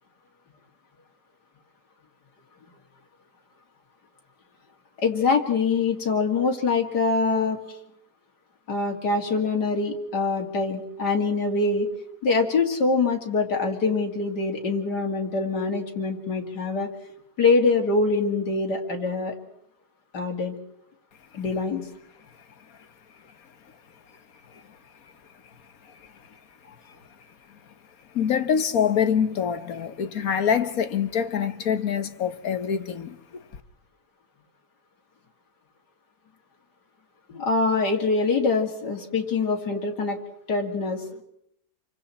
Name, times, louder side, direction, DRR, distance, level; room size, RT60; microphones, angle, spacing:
voice 1, 5.0-7.6 8.7-11.9 12.2-16.9 17.4-19.4 20.1-20.6 21.3-21.8 37.3-40.2 40.5-41.2, left 4 dB, 80° left, 3.0 m, -24 dB
voice 2, 25.8-26.4 26.6-26.7 28.1-33.4, left 8 dB, 60° left, 1.6 m, -26 dB
29.0 x 24.5 x 4.3 m
omnidirectional pair, 1.7 m